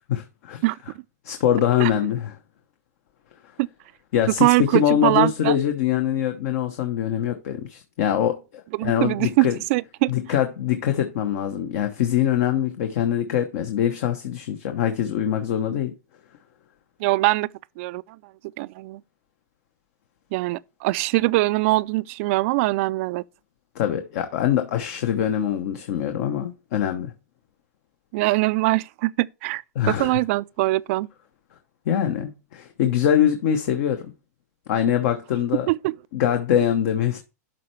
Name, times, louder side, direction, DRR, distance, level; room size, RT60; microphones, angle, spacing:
voice 1, 0.1-0.6 1.2-2.3 4.1-9.6 10.1-15.9 23.7-27.1 29.7-30.2 31.9-34.1 34.7-35.7 36.1-37.2, left 10 dB, 60° left, 1.0 m, -23 dB
voice 2, 4.4-5.6 8.7-10.1 17.0-17.5 17.8-18.0 18.6-19.0 20.3-23.2 28.1-29.6 29.9-31.1 35.7-36.0, right 21 dB, 50° right, 0.3 m, -22 dB
12.0 x 4.4 x 3.2 m
hypercardioid pair, 130°, 9 cm